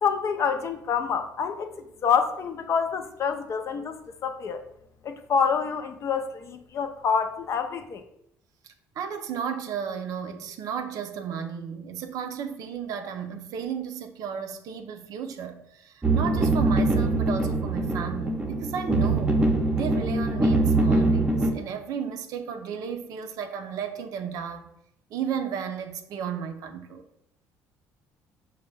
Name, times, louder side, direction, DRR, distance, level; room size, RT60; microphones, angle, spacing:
voice 1, 0.0-4.6 5.0-8.0, left 6 dB, 45° left, 0.4 m, -27 dB
voice 2, 9.0-19.5 19.7-24.7 25.1-27.0, right 7 dB, 65° right, 0.5 m, -34 dB
sound 1, 16.0-21.5, right 2 dB, 15° right, 0.6 m, -23 dB
5.2 x 2.2 x 3.3 m
supercardioid pair, 85°, 7 cm